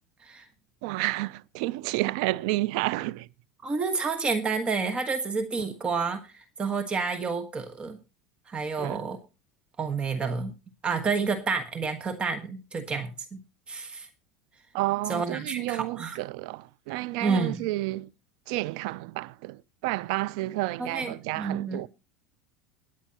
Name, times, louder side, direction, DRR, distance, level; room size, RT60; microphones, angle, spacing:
voice 1, 0.8-3.3 8.8-9.0 14.7-18.1 18.5-21.9, right 19 dB, 70° right, 0.5 m, -30 dB
voice 2, 3.6-6.3 6.6-8.0 8.5-9.2 9.8-10.5 10.8-14.1 15.1-16.2 17.2-17.6 20.8-21.9, right 4 dB, 25° right, 1.5 m, -29 dB
19.5 x 9.5 x 3.0 m
hypercardioid pair, 90°, 4 cm